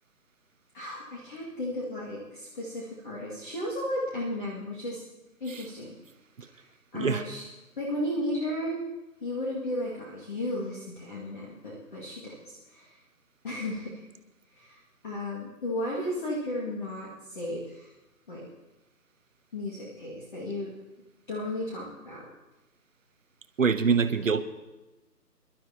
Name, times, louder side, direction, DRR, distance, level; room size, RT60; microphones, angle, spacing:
voice 1, 0.7-5.0 5.4-5.9 6.9-7.4 7.8-8.8 9.2-13.0 13.4-14.0 14.5-17.9 18.3-18.4 19.5-20.7 21.3-22.3, left 1 dB, 30° left, -5 dB, 2.2 m, -34 dB
voice 2, 23.6-24.4, right 5 dB, 50° right, 10 dB, 1.0 m, -24 dB
26.0 x 12.0 x 2.9 m, 1.0 s
figure-of-eight pair, 165°, 50 cm